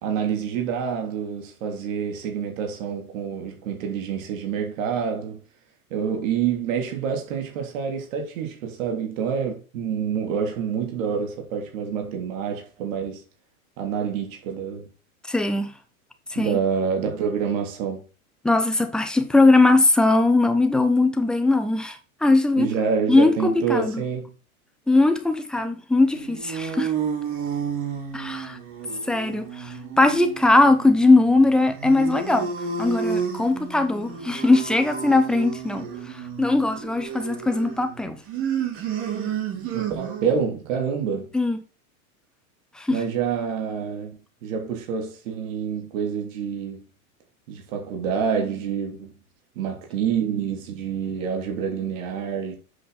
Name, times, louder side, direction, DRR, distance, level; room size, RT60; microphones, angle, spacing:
voice 1, 0.0-5.4 5.9-13.2 13.8-14.9 16.3-18.0 22.6-24.3 39.7-41.3 42.9-46.9 47.5-49.2 49.5-52.6, right 7 dB, 60° right, 3.0 m, -27 dB
voice 2, 15.3-15.7 16.3-16.6 18.4-22.7 23.1-24.0 24.9-26.9 28.1-28.6 29.1-32.5 32.8-35.9 36.4-38.2 41.3-41.6 42.8-43.0, left 2 dB, ahead, 0.4 m, -20 dB
sound 1, 26.0-40.5, right 7 dB, 30° right, 2.4 m, -31 dB
7.9 x 5.7 x 4.0 m
supercardioid pair, 145°, 43 cm